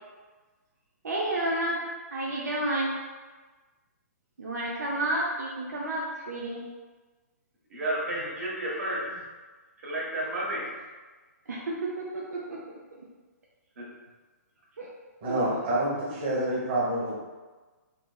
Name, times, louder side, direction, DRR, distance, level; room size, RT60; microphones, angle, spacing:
voice 1, 1.0-1.8 2.1-2.9 4.4-6.6 11.5-12.6 12.9-13.0 14.8-14.9 15.3-15.4, right 1 dB, 85° right, -4 dB, 0.6 m, -30 dB
voice 2, 7.7-9.0 9.8-10.6 13.8-13.9, right 1 dB, 65° right, -5 dB, 1.3 m, -31 dB
voice 3, 15.2-17.2, right 1 dB, 40° right, -7 dB, 1.3 m, -27 dB
3.7 x 2.4 x 2.3 m, 1.3 s
hypercardioid pair, 150°, 9 cm